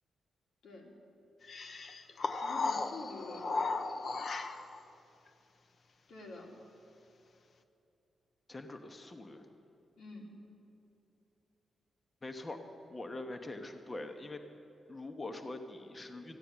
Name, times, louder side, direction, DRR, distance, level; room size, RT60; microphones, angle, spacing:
sound 1, 1.5-4.8, left 3 dB, 50° left, 0.8 m, -36 dB
voice 1, 2.4-4.2 6.1-6.5 10.0-10.3, left 2 dB, 85° left, -1 dB, 2.7 m, -48 dB
voice 2, 8.5-9.5 12.2-12.6 12.9-14.4 14.9-16.4, left 2 dB, 25° left, 6 dB, 0.9 m, -43 dB
14.5 x 9.2 x 8.9 m, 2.8 s
cardioid pair, 105°, 0 cm